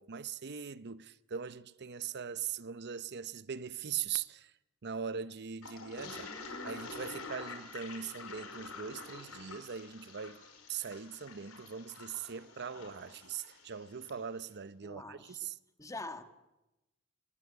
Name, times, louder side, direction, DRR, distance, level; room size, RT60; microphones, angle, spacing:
voice 1, 0.0-4.5 4.8-6.3 6.6-10.4 10.7-15.6, right 7 dB, 50° right, 0.7 m, -41 dB
Toilet flush, 5.6-14.2, left 4 dB, 80° left, 5.6 m, -48 dB
voice 2, 6.0-7.1 14.8-15.4 15.8-16.2, left 2 dB, 15° left, 1.5 m, -46 dB
25.0 x 20.0 x 8.1 m
head